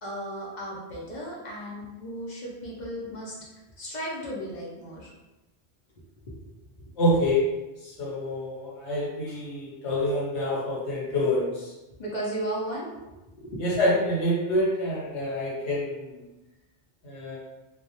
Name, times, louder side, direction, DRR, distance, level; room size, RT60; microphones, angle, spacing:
voice 1, 0.0-3.3 3.8-5.1 6.3-6.5 12.0-12.9 13.3-13.6, right 1 dB, 50° left, -5 dB, 0.6 m, -35 dB
voice 2, 7.0-7.4 7.8-11.7 13.6-16.2 17.0-17.4, left 1 dB, 75° left, -5 dB, 1.1 m, -27 dB
2.2 x 2.0 x 2.7 m, 1.1 s
omnidirectional pair, 1.2 m